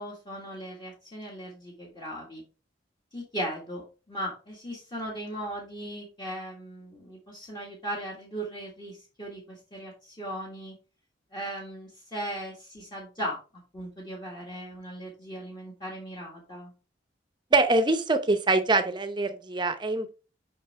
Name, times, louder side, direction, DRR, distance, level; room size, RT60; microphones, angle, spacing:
voice 1, 0.0-2.4 3.1-10.8 11.3-13.4 13.7-16.7, right 1 dB, 25° left, -2 dB, 1.6 m, -38 dB
voice 2, 17.5-20.1, right 2 dB, 25° right, 9 dB, 0.7 m, -24 dB
6.5 x 5.3 x 3.3 m, 0.33 s
head